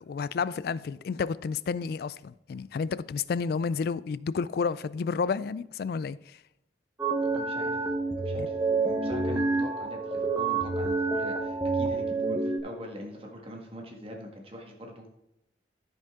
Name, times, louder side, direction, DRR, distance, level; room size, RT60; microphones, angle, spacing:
voice 1, 0.0-6.4 8.4-8.5, left 5 dB, 55° left, 0.3 m, -31 dB
sound 1, 7.0-12.6, right 3 dB, 10° right, 1.0 m, -28 dB
voice 2, 7.3-7.8 8.2-15.1, equal, 30° right, 1.5 m, -43 dB
13.5 x 5.3 x 3.6 m
head